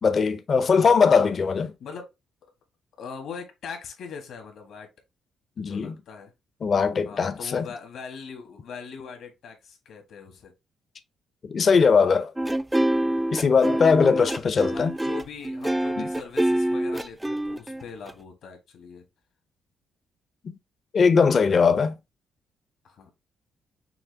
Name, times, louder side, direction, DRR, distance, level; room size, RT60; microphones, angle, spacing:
voice 1, 0.0-1.7 5.6-5.9 6.6-7.6 11.4-12.3 13.3-14.9 16.0-16.1 20.9-22.0, left 5 dB, 45° left, 0.7 m, -20 dB
voice 2, 0.7-1.1 1.8-2.1 3.0-4.9 5.6-6.3 7.0-10.5 13.2-13.5 14.2-14.4 14.7-19.0 22.8-23.1, left 6 dB, 70° left, 1.6 m, -41 dB
sound 1, 12.4-18.1, right 1 dB, 10° right, 0.3 m, -26 dB
5.9 x 2.4 x 3.4 m
cardioid pair, 90°, 0 cm